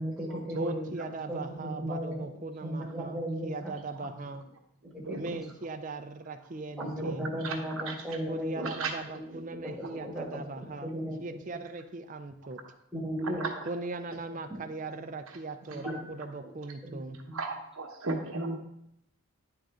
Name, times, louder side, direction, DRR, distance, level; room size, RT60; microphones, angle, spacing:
voice 1, 0.0-2.2 2.6-3.7 4.9-5.4 6.8-8.7 9.1-9.7 10.0-11.2 12.9-13.6 14.5-14.6 15.7-16.0 16.8-17.0 17.3-17.4, equal, ahead, -4 dB, 1.4 m, -36 dB
voice 2, 0.5-4.5 5.2-7.3 8.3-10.9 11.2-12.6 13.7-17.2, right 3 dB, 35° right, 8 dB, 0.4 m, -39 dB
voice 3, 4.8-5.2 7.0-7.1 7.4-7.5 7.9-8.0 8.6-8.9 13.4-13.5 15.8-15.9 17.3-18.6, right 3 dB, 75° right, 3 dB, 1.0 m, -34 dB
9.9 x 3.7 x 3.5 m, 0.79 s
head